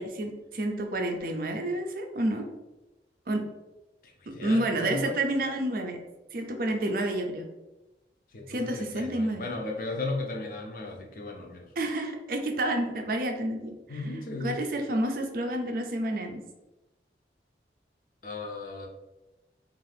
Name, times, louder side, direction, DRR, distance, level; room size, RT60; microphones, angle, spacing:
voice 1, 0.0-2.5 3.3-3.4 4.4-6.0 6.3-7.5 8.5-9.4 11.8-13.7 14.4-16.4, right 1 dB, 55° right, 4 dB, 0.4 m, -29 dB
voice 2, 4.0-5.1 8.3-11.7 13.9-14.6 18.2-18.9, left 2 dB, 50° left, 1 dB, 0.5 m, -35 dB
2.7 x 2.4 x 3.3 m, 1.0 s
head